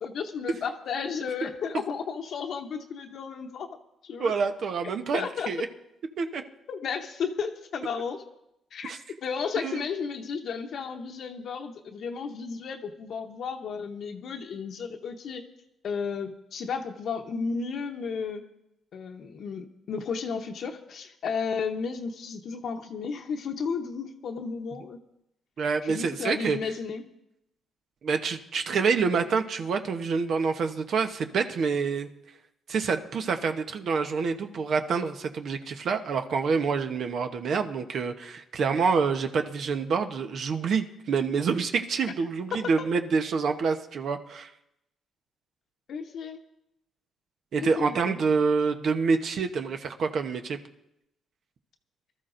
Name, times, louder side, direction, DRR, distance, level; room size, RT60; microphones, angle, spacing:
voice 1, 0.0-3.7 4.0-4.3 5.1-5.5 6.7-8.2 8.7-8.9 9.2-15.4 15.8-18.4 18.9-25.0 25.8-27.0 42.5-42.7 45.9-46.4 47.6-48.2, left 5 dB, 65° left, 3 dB, 0.9 m, -33 dB
voice 2, 4.2-5.7 6.2-6.4 8.8-9.0 9.6-9.8 25.6-26.6 28.0-32.1 32.7-44.5 47.5-50.6, right 5 dB, 60° right, 7 dB, 1.0 m, -27 dB
24.0 x 13.0 x 2.6 m, 0.83 s
cardioid pair, 90°, 0 cm